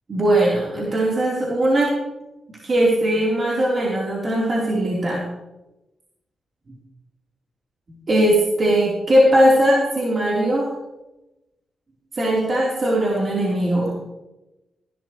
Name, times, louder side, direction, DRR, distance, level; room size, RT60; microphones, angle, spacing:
voice 1, 0.1-2.0 2.6-5.3 8.1-10.7 12.1-14.0, right 1 dB, 45° right, -5 dB, 4.0 m, -19 dB
16.5 x 12.5 x 3.3 m, 0.98 s
cardioid pair, 80°, 0 cm